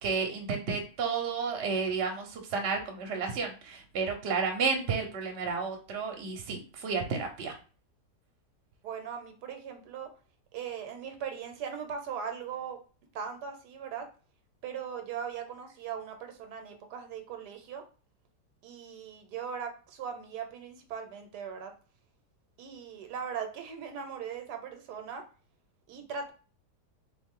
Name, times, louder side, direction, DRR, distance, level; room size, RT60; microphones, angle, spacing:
voice 1, 0.0-7.5, right 5 dB, 50° right, 3 dB, 0.9 m, -31 dB
voice 2, 8.8-10.1 10.5-12.8 13.1-14.1 14.6-17.8 18.6-21.7 22.6-25.2 25.9-26.3, right 7 dB, 80° right, 6 dB, 1.2 m, -39 dB
3.6 x 2.4 x 3.6 m, 0.37 s
omnidirectional pair, 1.8 m